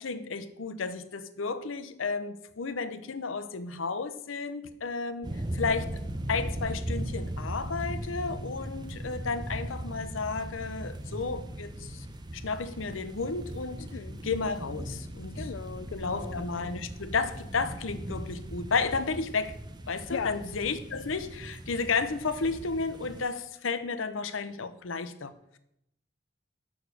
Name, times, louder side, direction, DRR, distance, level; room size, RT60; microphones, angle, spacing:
voice 1, 0.0-6.0 6.3-12.0 12.3-13.9 14.2-15.4 16.0-19.6 19.9-25.3, left 4 dB, 85° left, 0.7 m, -32 dB
sound 1, 5.2-23.2, right 1 dB, 20° right, 0.7 m, -38 dB
voice 2, 13.8-14.2 15.3-16.4 20.1-20.4, left 6 dB, 65° left, 0.4 m, -37 dB
7.0 x 6.3 x 6.6 m
head